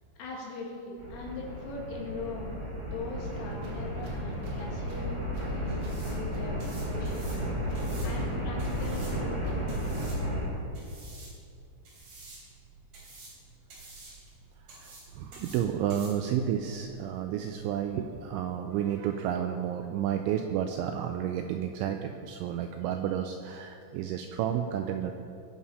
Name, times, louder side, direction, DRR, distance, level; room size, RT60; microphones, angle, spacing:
voice 1, 0.2-2.6 2.9-5.2 5.5-6.6 6.9-10.1, left 3 dB, 70° left, -2 dB, 4.6 m, -41 dB
sound 1, 1.0-10.5, equal, 15° right, 0.8 m, -33 dB
Tools, 3.2-9.8, right 3 dB, 65° right, 3.9 m, -50 dB
sound 2, 5.7-18.2, right 2 dB, 45° right, 4.8 m, -51 dB
voice 2, 14.8-25.1, right 9 dB, 90° right, 5 dB, 2.7 m, -31 dB
20.0 x 7.4 x 5.5 m, 2.5 s
omnidirectional pair, 6.0 m